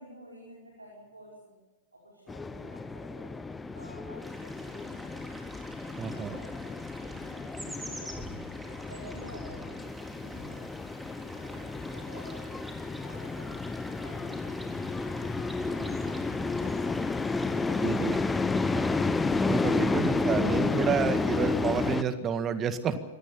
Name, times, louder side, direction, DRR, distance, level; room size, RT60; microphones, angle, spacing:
voice 1, 0.0-1.5 1.9-3.3 3.7-5.5 6.1-10.6 11.1-13.6 13.9-18.1 18.6-19.2, right 1 dB, 85° right, -2 dB, 5.4 m, -51 dB
sound 1, 2.3-22.0, left 3 dB, 10° left, 1.1 m, -31 dB
sound 2, 4.2-22.0, right 1 dB, 5° right, 3.8 m, -47 dB
voice 2, 6.0-6.4 17.8-18.2 19.5-23.0, right 7 dB, 25° right, 11 dB, 1.8 m, -30 dB
25.0 x 18.5 x 7.1 m, 1.2 s
figure-of-eight pair, 95°, 0 cm